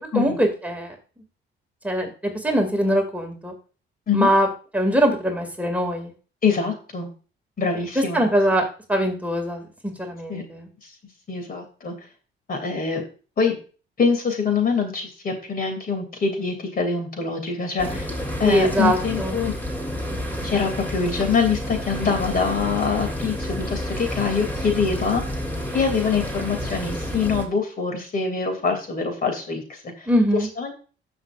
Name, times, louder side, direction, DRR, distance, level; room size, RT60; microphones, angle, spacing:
voice 1, 0.1-0.9 1.8-2.1 2.4-3.5 4.1-4.5 4.7-6.1 8.1-8.6 8.9-9.7 10.0-10.7 18.4-19.4 30.1-30.5, equal, 5° right, 2 dB, 2.3 m, -22 dB
voice 2, 6.4-7.1 7.6-8.2 10.3-10.4 10.8-10.9 11.3-11.9 12.5-13.0 13.4-13.6 14.0-19.5 20.4-25.2 25.7-30.1 30.6-30.7, left 5 dB, 45° left, 5 dB, 2.6 m, -24 dB
sound 1, 17.8-27.4, left 1 dB, 10° left, 2.6 m, -30 dB
15.0 x 6.1 x 2.5 m, 0.37 s
cardioid pair, 90°, 20 cm